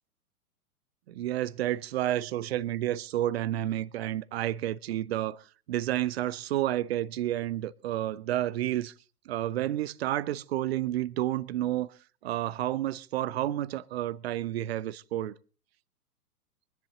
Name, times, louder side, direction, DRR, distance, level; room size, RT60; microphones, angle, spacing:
voice 1, 1.1-8.9 9.3-11.9 12.2-15.4, right 13 dB, 45° right, 0.6 m, -30 dB
23.5 x 10.5 x 3.9 m
figure-of-eight pair, 110°, 45 cm